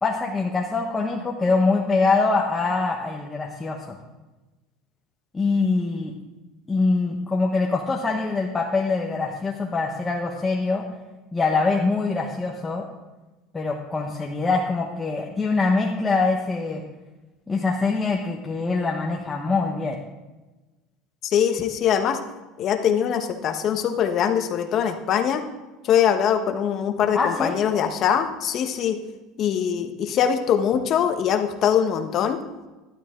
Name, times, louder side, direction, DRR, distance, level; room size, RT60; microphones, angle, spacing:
voice 1, 0.0-4.0 5.3-6.2 6.7-10.8 11.3-12.9 13.5-16.8 17.5-20.0 27.1-27.6, left 3 dB, 15° left, -2 dB, 1.2 m, -24 dB
voice 2, 21.2-22.2 22.6-25.4 25.8-29.0 29.4-32.4, left 8 dB, 50° left, 6 dB, 1.2 m, -22 dB
12.0 x 12.0 x 3.8 m, 1.1 s
supercardioid pair, 115°, 0 cm